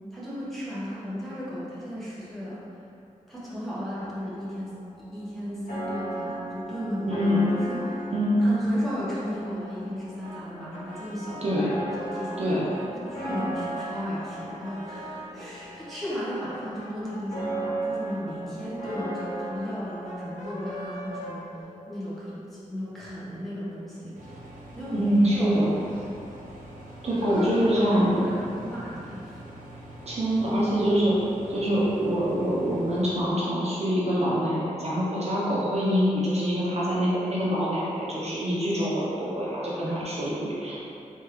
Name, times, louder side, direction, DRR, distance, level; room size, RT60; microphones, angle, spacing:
voice 1, 0.1-2.6 3.3-8.1 8.4-11.6 12.0-12.4 13.1-21.4 21.9-24.4 24.7-26.0 27.1-29.4, equal, ahead, -11 dB, 1.3 m, -35 dB
sound 1, 4.0-21.6, right 1 dB, 80° left, 1.1 m, -37 dB
voice 2, 7.1-7.4 8.1-8.4 11.4-11.7 12.4-12.7 24.9-25.7 27.0-28.3 30.1-31.2 31.5-40.8, equal, 50° right, -7 dB, 0.7 m, -25 dB
Brass instrument, 10.2-15.4 15.8-22.2, equal, 60° left, 0.7 m, -43 dB
sound 2, 24.1-33.1, right 1 dB, 85° right, 0.8 m, -44 dB
3.5 x 3.1 x 3.3 m, 2.7 s
wide cardioid pair, 90°, 14 cm